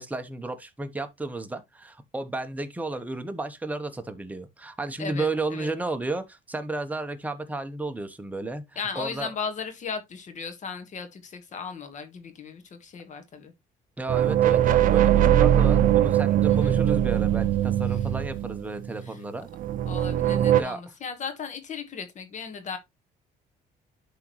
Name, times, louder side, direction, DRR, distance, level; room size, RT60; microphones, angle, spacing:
voice 1, 0.0-8.6 8.9-9.3 14.0-19.5 20.6-20.8, right 2 dB, 10° right, 1.0 m, -33 dB
voice 2, 5.0-5.7 8.7-13.5 16.5-16.8 17.8-18.1 19.0-19.2 19.9-22.8, left 5 dB, 45° left, 1.7 m, -36 dB
sound 1, 14.1-19.0 19.5-20.6, right 11 dB, 55° right, 0.6 m, -21 dB
11.0 x 3.8 x 3.1 m
cardioid pair, 110°, 17 cm